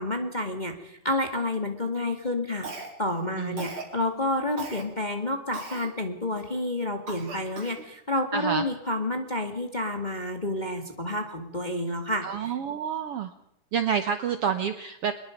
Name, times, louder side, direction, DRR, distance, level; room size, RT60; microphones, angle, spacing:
voice 1, 0.0-2.7 3.0-12.5, left 1 dB, 15° left, 5 dB, 1.7 m, -29 dB
Cough, 2.6-3.2 3.6-3.9 4.6-4.8 5.5-5.9 6.4-6.5 7.1-7.8, right 3 dB, 40° right, 4.7 m, -37 dB
voice 2, 8.3-8.6 12.2-13.3 13.7-15.1, right 7 dB, 65° right, 10 dB, 1.6 m, -28 dB
24.5 x 21.0 x 5.2 m, 0.78 s
omnidirectional pair, 3.7 m